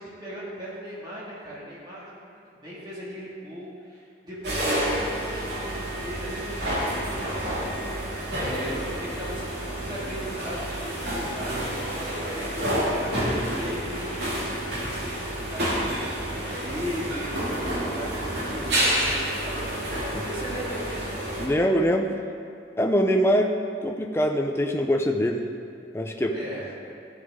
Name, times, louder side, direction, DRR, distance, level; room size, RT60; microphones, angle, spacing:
voice 1, 0.0-13.1 13.6-21.1 26.3-26.7, equal, 25° right, -8 dB, 2.0 m, -38 dB
sound 1, 4.4-21.5, right 1 dB, 75° right, 2.2 m, -29 dB
voice 2, 21.4-22.2 22.8-23.5 23.8-25.4 25.9-26.3, equal, 15° left, 4 dB, 0.5 m, -23 dB
14.0 x 6.4 x 3.6 m, 2.5 s
head